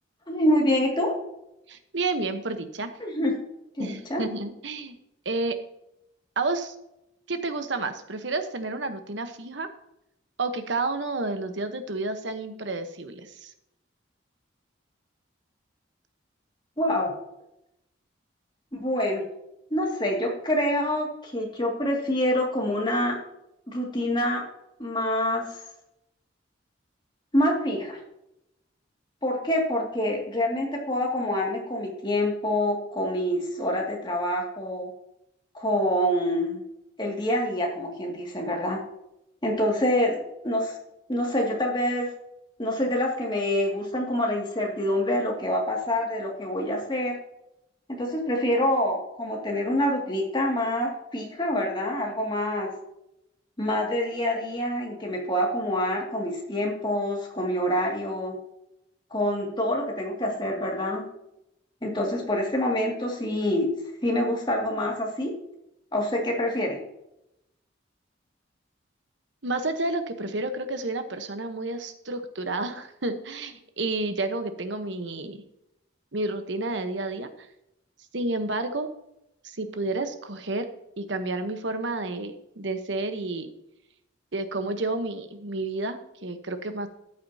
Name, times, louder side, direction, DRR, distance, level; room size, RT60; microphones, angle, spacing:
voice 1, 0.3-1.2 3.0-3.3 3.8-4.2 16.8-17.1 18.7-19.2 19.7-23.2 23.7-24.4 24.8-25.5 27.3-28.0 29.2-34.9 35.5-36.6 37.0-38.8 39.4-40.7 41.1-42.1 42.6-47.2 48.0-52.7 53.6-58.4 59.1-61.0 61.8-63.7 64.0-65.3 65.9-66.8, left 1 dB, 25° left, 0 dB, 2.2 m, -26 dB
voice 2, 1.7-2.9 3.8-5.0 5.2-5.6 6.4-6.7 7.3-9.7 10.4-13.5 69.4-75.4 76.1-77.5 78.1-78.9 79.4-80.7 81.0-83.5 84.3-86.9, right 2 dB, 70° right, 8 dB, 1.1 m, -30 dB
13.5 x 8.6 x 2.8 m, 0.82 s
head